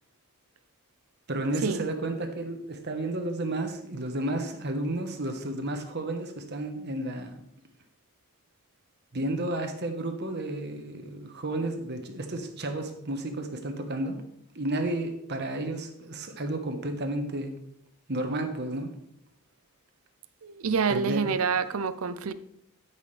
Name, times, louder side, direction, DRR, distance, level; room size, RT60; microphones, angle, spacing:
voice 1, 1.3-7.4 9.1-14.2 14.5-17.6 18.1-18.9 20.9-21.2, right 1 dB, 50° right, 1.2 m, -32 dB
voice 2, 20.4-22.3, right 5 dB, 75° right, 0.6 m, -27 dB
13.0 x 5.7 x 3.4 m
head